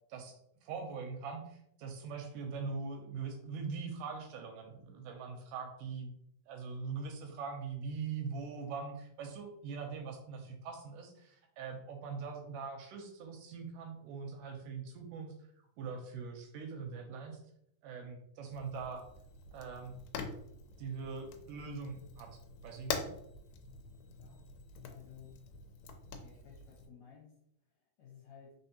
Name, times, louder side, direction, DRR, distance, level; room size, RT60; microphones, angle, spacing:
voice 1, 0.6-6.1 6.5-15.3 15.8-17.4 17.8-19.0 19.5-19.9 20.8-22.3 22.6-23.1, right 5 dB, 80° right, 3 dB, 2.1 m, -42 dB
Fire, 18.5-26.9, left 6 dB, 80° left, 2.2 m, -45 dB
voice 2, 24.9-25.3 26.2-27.4 28.0-28.6, left 7 dB, 65° left, -3 dB, 1.8 m, -56 dB
4.3 x 4.0 x 2.7 m, 0.73 s
omnidirectional pair, 4.0 m